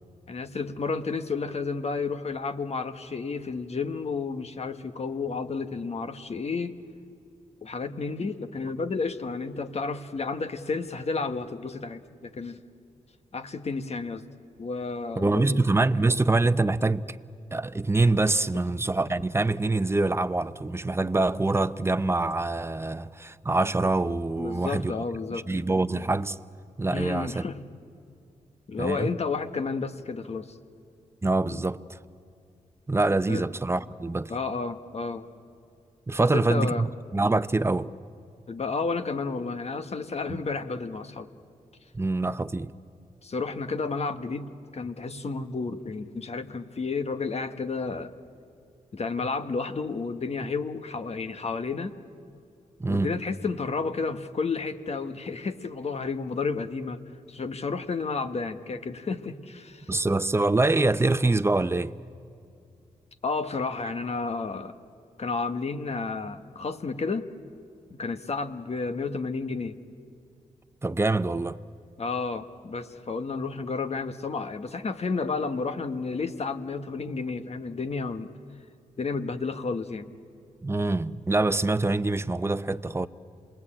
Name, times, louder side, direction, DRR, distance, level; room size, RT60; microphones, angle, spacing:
voice 1, 0.3-6.7 7.6-12.6 13.3-14.3 14.6-15.6 24.4-25.5 26.9-27.6 28.7-30.5 33.3-33.4 34.3-35.3 36.2-36.9 38.5-41.3 43.2-48.1 48.9-52.0 52.9-57.0 57.3-59.9 63.2-64.8 65.2-67.3 67.9-69.8 72.0-78.3 79.0-80.1, left 4 dB, 50° left, 1.4 m, -31 dB
voice 2, 15.2-17.2 17.5-24.9 25.3-26.4 26.8-27.4 28.8-29.1 31.2-32.0 32.9-34.3 36.1-37.9 40.3-40.4 41.9-42.7 52.8-53.1 59.9-61.9 70.8-71.6 80.6-83.1, right 2 dB, 20° right, 0.8 m, -25 dB
27.0 x 20.5 x 8.8 m
cardioid pair, 55°, 14 cm